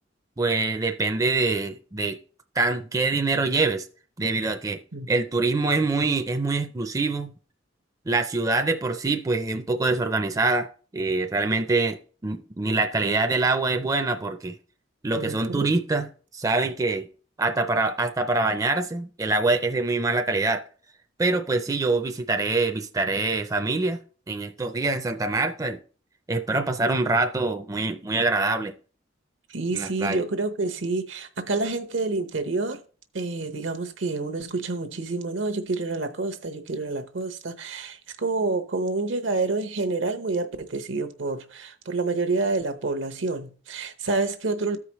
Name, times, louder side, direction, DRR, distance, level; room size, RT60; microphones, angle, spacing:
voice 1, 0.4-2.2 2.6-3.9 4.2-4.8 5.1-7.3 8.1-14.5 15.0-17.1 17.4-20.6 21.2-24.0 24.3-25.8 26.3-28.7 29.7-30.2, right 3 dB, 20° right, 0.4 m, -25 dB
voice 2, 15.1-15.8 29.5-32.8 33.1-44.8, right 3 dB, 75° right, 0.9 m, -28 dB
13.5 x 4.9 x 3.0 m
head